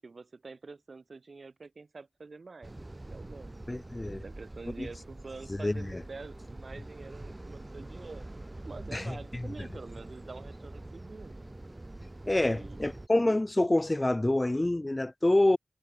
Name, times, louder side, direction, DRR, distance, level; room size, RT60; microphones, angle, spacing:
voice 1, 0.0-2.8 3.1-3.6 4.0-8.3 8.7-11.4 12.4-12.9, right 4 dB, 75° right, 7.5 m, -46 dB
sound 1, 2.6-13.1, right 2 dB, 35° right, 1.4 m, -45 dB
voice 2, 3.7-4.2 4.8-4.9 5.5-6.0 8.9-9.5 12.3-15.6, left 1 dB, 30° left, 0.4 m, -27 dB
wide cardioid pair, 50°, 0 cm